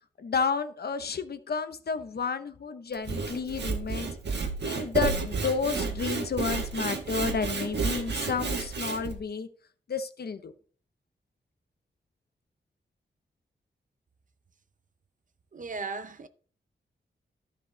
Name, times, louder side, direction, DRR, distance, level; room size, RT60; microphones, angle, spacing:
voice 1, 0.2-4.1 4.6-9.5 9.9-10.5, left 5 dB, 55° left, 0.8 m, -31 dB
Sawing / Wood, 2.9-9.1, right 4 dB, 65° right, 1.5 m, -31 dB
voice 2, 15.5-16.3, right 4 dB, 45° right, 0.6 m, -36 dB
12.5 x 5.2 x 3.9 m
wide cardioid pair, 160°, 19 cm